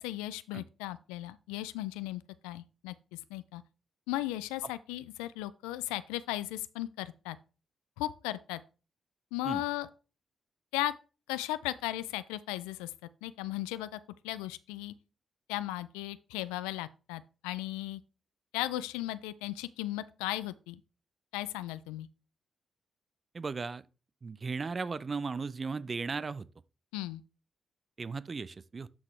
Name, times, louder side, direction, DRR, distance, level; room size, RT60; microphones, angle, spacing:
voice 1, 0.0-3.6 4.1-7.4 8.0-8.6 9.3-9.9 10.7-10.9 11.3-12.9 13.2-14.9 15.5-18.0 18.5-20.8 21.3-22.1 26.9-27.2, left 15 dB, 85° left, 0.3 m, -36 dB
voice 2, 23.3-23.8 24.2-26.5 28.0-28.9, right 4 dB, 45° right, 0.5 m, -36 dB
12.0 x 4.0 x 3.2 m
hypercardioid pair, 40°, 0 cm